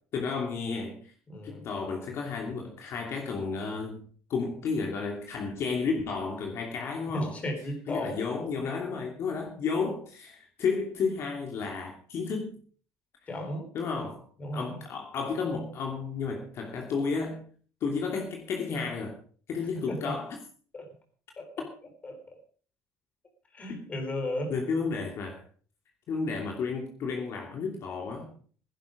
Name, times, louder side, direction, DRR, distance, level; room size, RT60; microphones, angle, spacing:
voice 1, 0.1-1.1 1.4-7.4 7.9-12.5 13.7-14.2 14.5-17.4 17.8-19.2 19.5-20.4 23.7-23.8 24.5-25.4 26.1-28.3, left 5 dB, 45° left, 2 dB, 2.8 m, -32 dB
voice 2, 1.3-1.6 7.1-8.2 13.3-13.7 14.4-14.8 19.7-20.2 20.7-20.9 21.4-21.7 22.0-22.4 23.5-24.5, left 1 dB, 20° left, 5 dB, 4.0 m, -35 dB
16.0 x 11.0 x 5.1 m, 0.44 s
cardioid pair, 155°, 6 cm